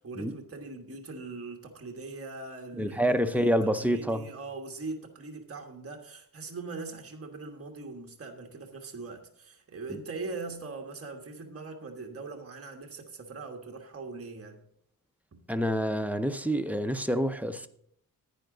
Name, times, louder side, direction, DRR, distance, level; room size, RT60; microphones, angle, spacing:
voice 1, 0.0-14.6 15.3-15.4, right 3 dB, 40° right, 1.4 m, -41 dB
voice 2, 2.7-4.3 15.5-17.7, equal, 5° right, 0.5 m, -27 dB
10.0 x 9.5 x 3.8 m
wide cardioid pair, 125°, 36 cm